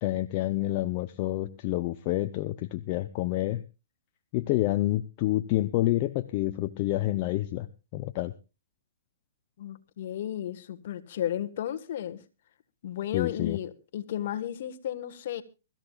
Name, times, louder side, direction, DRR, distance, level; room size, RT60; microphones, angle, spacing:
voice 1, 0.0-3.6 4.3-7.7 7.9-8.3 13.1-13.6, left 16 dB, 40° left, 0.7 m, -28 dB
voice 2, 9.6-12.2 12.8-15.4, left 11 dB, 55° left, 1.4 m, -33 dB
24.0 x 13.5 x 2.4 m
hypercardioid pair, 140°, 0 cm